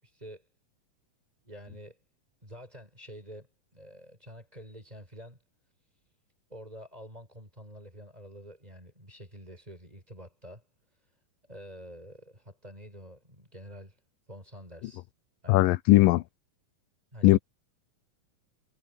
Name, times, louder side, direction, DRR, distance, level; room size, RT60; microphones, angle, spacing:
voice 1, 0.0-0.4 1.4-2.0 2.4-5.4 6.5-10.6 11.5-14.0 14.3-15.0 15.4-15.7 17.1-17.4, equal, 10° right, 6.6 m, -47 dB
voice 2, 15.5-16.2 17.2-17.4, left 18 dB, 85° left, 2.3 m, -19 dB
omnidirectional pair, 3.9 m